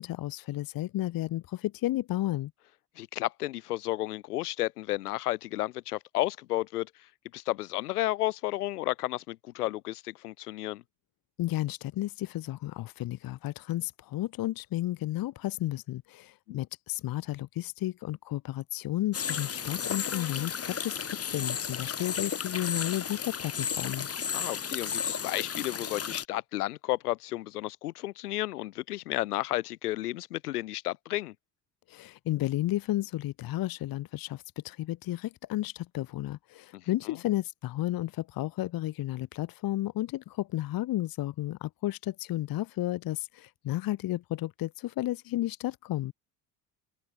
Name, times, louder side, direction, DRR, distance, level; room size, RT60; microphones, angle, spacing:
voice 1, 0.0-2.5 11.4-24.1 31.9-46.1, left 15 dB, 45° left, 1.4 m, -32 dB
voice 2, 3.0-6.9 7.3-10.8 16.5-16.6 24.3-31.3, left 16 dB, 75° left, 2.3 m, -32 dB
light stream with fly and footsteps, 19.1-26.3, left 7 dB, 30° left, 2.5 m, -34 dB
open air
figure-of-eight pair, 55°, 47 cm